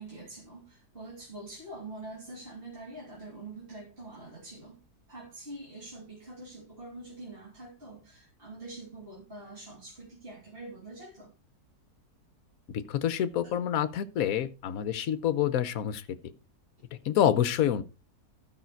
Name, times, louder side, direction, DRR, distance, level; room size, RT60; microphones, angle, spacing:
voice 1, 0.0-4.8 5.1-11.3 13.4-13.5, right 2 dB, 35° right, 3.3 m, -45 dB
voice 2, 12.7-16.0 17.1-17.8, left 10 dB, 65° left, 1.1 m, -27 dB
13.0 x 5.7 x 4.5 m
omnidirectional pair, 1.7 m